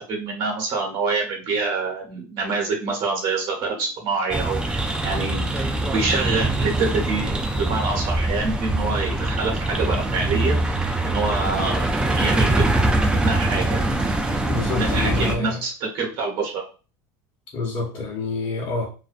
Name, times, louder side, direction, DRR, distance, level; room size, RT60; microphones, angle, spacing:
voice 1, 0.1-10.6 11.0-11.9 12.2-12.7 13.0-13.9 14.7-16.6, right 4 dB, 55° right, 0 dB, 1.0 m, -26 dB
sound 1, 4.3-15.3, right 2 dB, 10° right, 0.4 m, -23 dB
voice 2, 14.5-15.6 17.5-18.9, left 3 dB, 45° left, -4 dB, 1.0 m, -27 dB
2.5 x 2.2 x 2.5 m, 0.34 s
supercardioid pair, 125°, 10 cm